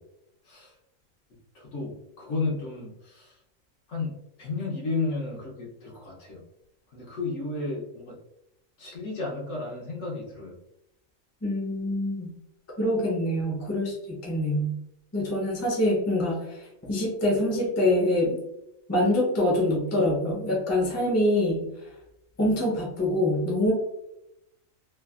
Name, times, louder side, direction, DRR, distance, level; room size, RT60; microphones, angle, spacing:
voice 1, 1.5-3.4 3.9-6.4 6.9-8.2 8.8-10.5, left 3 dB, 65° left, -3 dB, 1.0 m, -33 dB
voice 2, 11.4-12.3 12.8-14.7 15.1-16.6 16.9-18.4 18.9-21.6 22.4-23.7, left 1 dB, 15° left, -3 dB, 0.5 m, -25 dB
3.2 x 2.4 x 2.3 m, 0.85 s
omnidirectional pair, 1.4 m